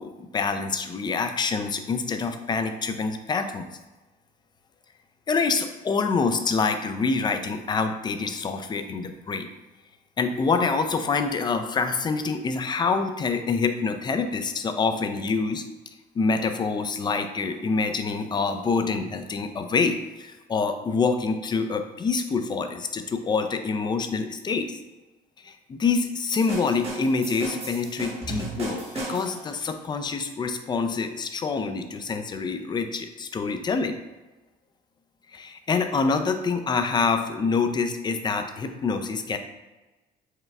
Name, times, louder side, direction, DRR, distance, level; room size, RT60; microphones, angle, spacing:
voice 1, 0.0-3.7 5.3-9.5 10.2-15.6 16.2-24.8 25.4-33.9 35.3-39.4, left 4 dB, 25° left, 7 dB, 0.4 m, -26 dB
sound 1, 26.3-29.5, right 2 dB, 35° right, 1.1 m, -35 dB
4.7 x 2.3 x 3.2 m, 1.1 s
cardioid pair, 110°, 17 cm